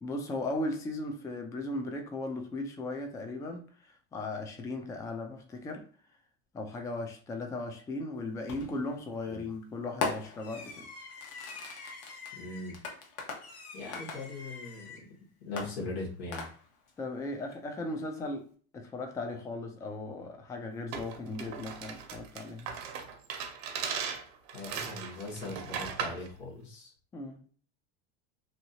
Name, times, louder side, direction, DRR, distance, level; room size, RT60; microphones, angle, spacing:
voice 1, 0.0-5.8 6.5-10.8 17.0-18.5 18.7-22.7 27.1-27.4, left 2 dB, 10° left, 0.3 m, -37 dB
Fireworks, 8.5-8.9 10.0-15.1 15.6-16.9, left 4 dB, 50° left, 0.9 m, -40 dB
voice 2, 12.3-12.7 13.7-15.0 15.4-16.5 24.5-26.9, left 2 dB, 85° left, 1.5 m, -40 dB
sound 1, 20.9-26.3, right 7 dB, 70° right, 0.8 m, -38 dB
2.8 x 2.7 x 2.8 m
supercardioid pair, 125°, 31 cm